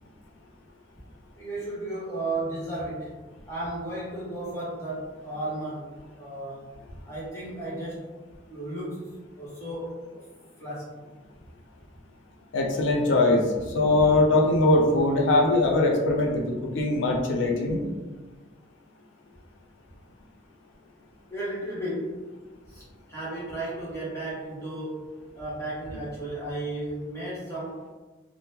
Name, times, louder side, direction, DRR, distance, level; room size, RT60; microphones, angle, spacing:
voice 1, 1.3-3.1 3.5-6.7 7.1-8.1 8.5-10.2 10.6-10.9 21.3-22.2 22.7-25.0 25.3-27.8, right 1 dB, 15° left, -8 dB, 1.0 m, -34 dB
voice 2, 12.5-17.8, left 2 dB, 65° left, 1 dB, 0.4 m, -22 dB
3.5 x 2.0 x 2.8 m, 1.3 s
head